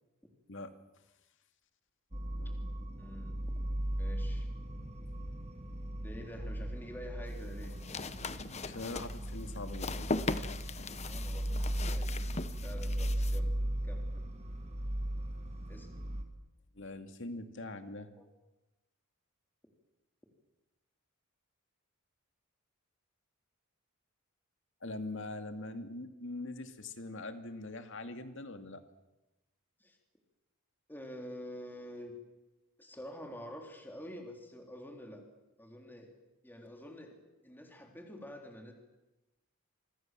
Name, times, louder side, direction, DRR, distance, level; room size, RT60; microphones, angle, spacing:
sound 1, 2.1-16.2, right 1 dB, 30° right, 2.7 m, -37 dB
voice 1, 3.0-3.3 4.0-4.5 6.0-7.7 11.1-11.5 11.9-12.3 12.6-13.6 13.8-14.3 15.7-16.0 18.2-18.3 29.8-30.0 30.9-32.1 32.8-35.2 35.6-36.1 36.4-37.1 37.4-38.7, equal, 10° left, 3 dB, 3.7 m, -47 dB
sound 2, 7.3-13.4, left 3 dB, 30° left, 1.0 m, -39 dB
voice 2, 8.6-10.1 16.7-18.1 24.8-28.8, left 2 dB, 60° left, 8 dB, 2.4 m, -42 dB
28.0 x 25.0 x 7.6 m, 1.0 s
head